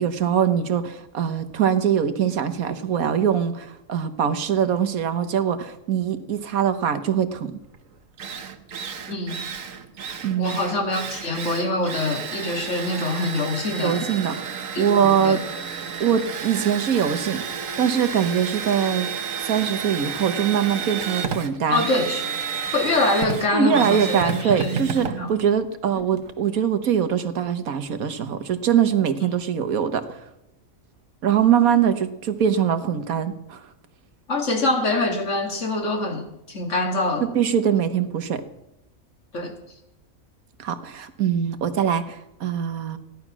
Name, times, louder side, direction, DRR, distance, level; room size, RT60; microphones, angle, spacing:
voice 1, 0.0-7.5 10.2-10.6 13.8-15.4 16.0-17.4 17.8-19.1 19.4-21.9 23.5-30.2 31.2-33.6 37.3-38.4 40.6-43.0, right 8 dB, 90° right, 10 dB, 1.6 m, -22 dB
Drill, 7.7-7.8 8.2-26.3, right 6 dB, 70° right, 1.5 m, -31 dB
voice 2, 10.4-14.0 14.7-15.4 21.7-22.2 22.7-25.3 34.3-37.3 39.3-39.5, left 2 dB, 60° left, 4 dB, 2.4 m, -25 dB
16.0 x 11.0 x 6.1 m, 0.89 s
omnidirectional pair, 1.4 m